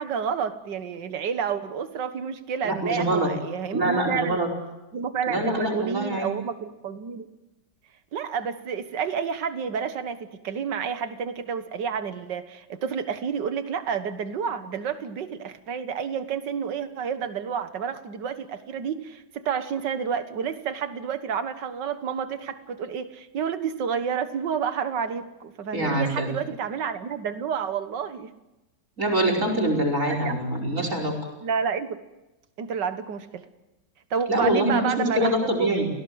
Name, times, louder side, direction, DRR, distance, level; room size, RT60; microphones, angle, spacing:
voice 1, 0.0-4.4 4.9-7.3 8.1-10.2 10.4-28.3 30.2-30.3 31.4-32.0 32.6-33.4 34.1-35.8, right 6 dB, 75° right, 10 dB, 2.1 m, -30 dB
voice 2, 2.6-3.3 3.7-4.5 5.3-6.3 25.7-26.3 29.0-31.2 34.3-35.9, right 1 dB, 45° right, 2 dB, 5.6 m, -24 dB
30.0 x 17.5 x 8.0 m, 1.0 s
omnidirectional pair, 1.9 m